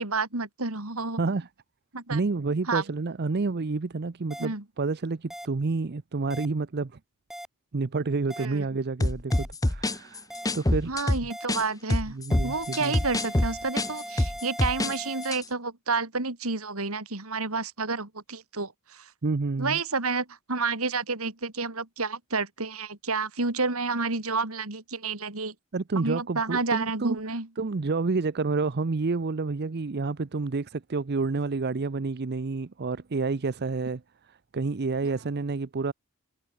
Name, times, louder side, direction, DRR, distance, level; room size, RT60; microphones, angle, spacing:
voice 1, 0.0-1.2 1.9-2.2 2.7-2.8 4.4-4.6 8.4-8.7 10.9-12.2 12.4-19.1 19.6-25.5 26.0-27.5, right 4 dB, 75° right, 3.5 m, -30 dB
voice 2, 1.2-1.5 2.1-7.0 7.7-10.3 10.5-10.9 12.1-13.0 19.2-19.8 25.7-27.2 27.6-34.0 34.3-35.9, right 3 dB, 50° right, 0.6 m, -29 dB
sound 1, 4.3-4.5 5.3-5.5 6.3-6.5 7.3-7.5 8.3-8.5 9.3-9.5 10.3-10.5 11.3-11.5 12.3-15.3, equal, ahead, 3.6 m, -39 dB
sound 2, 9.0-11.6 11.9-14.9 15.2-15.4, left 1 dB, 15° left, 0.9 m, -25 dB
head